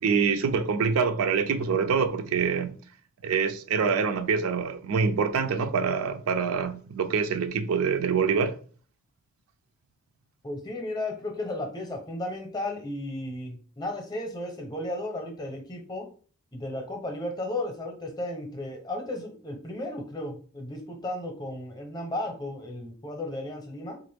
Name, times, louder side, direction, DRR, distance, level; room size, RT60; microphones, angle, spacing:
voice 1, 0.0-2.8 3.2-8.6, right 5 dB, 75° right, 0.4 m, -25 dB
voice 2, 10.4-16.1 16.5-24.0, left 1 dB, 20° left, 0.7 m, -34 dB
3.7 x 2.5 x 3.3 m
head